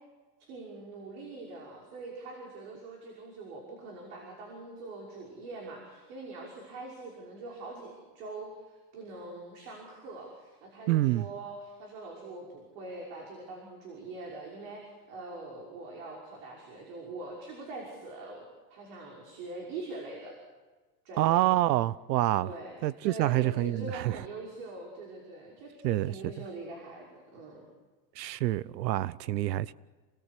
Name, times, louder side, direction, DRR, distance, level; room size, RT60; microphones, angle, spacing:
voice 1, 0.4-18.4 18.7-20.4 21.0-21.4 22.4-25.7 26.0-27.7, right 3 dB, 55° right, 5.9 m, -43 dB
voice 2, 10.9-11.3 21.2-22.5 22.8-24.2 25.8-26.1 28.2-29.7, right 15 dB, 80° right, 0.8 m, -27 dB
28.5 x 20.5 x 8.4 m
supercardioid pair, 150°, 49 cm